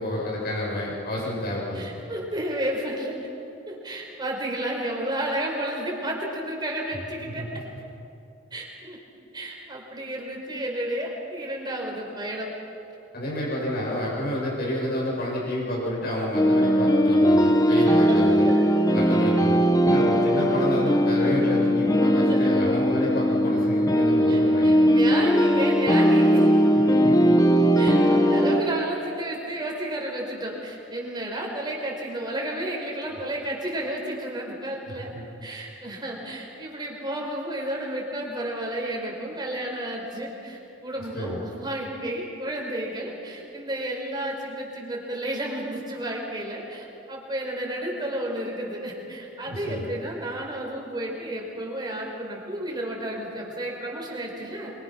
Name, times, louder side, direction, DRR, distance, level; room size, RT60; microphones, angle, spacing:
voice 1, 0.0-1.9 7.3-7.8 13.1-18.5 18.9-24.8 27.0-27.2 35.1-35.2 41.1-41.4 49.4-49.9, left 1 dB, 55° left, -4 dB, 7.3 m, -29 dB
voice 2, 1.7-3.1 3.7-7.6 8.5-9.0 9.3-12.5 17.8-18.2 18.4-18.6 22.3-22.4 24.3-26.6 27.8-35.1 35.4-54.7, right 1 dB, 25° right, -1 dB, 5.0 m, -32 dB
sound 1, 16.3-28.6, equal, 20° left, 1.3 m, -19 dB
26.5 x 24.0 x 6.1 m, 2.8 s
head